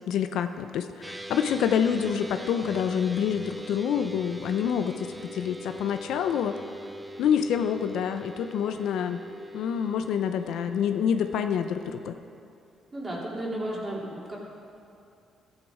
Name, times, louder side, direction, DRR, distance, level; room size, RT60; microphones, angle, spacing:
voice 1, 0.1-6.5 7.2-9.2 9.5-12.2, left 8 dB, 80° left, 8 dB, 0.6 m, -27 dB
sound 1, 1.0-12.1, equal, 10° right, 0.6 m, -42 dB
voice 2, 12.9-14.4, right 1 dB, 25° right, -4 dB, 2.9 m, -33 dB
13.5 x 8.9 x 4.9 m, 2.7 s
cardioid pair, 90°, 0 cm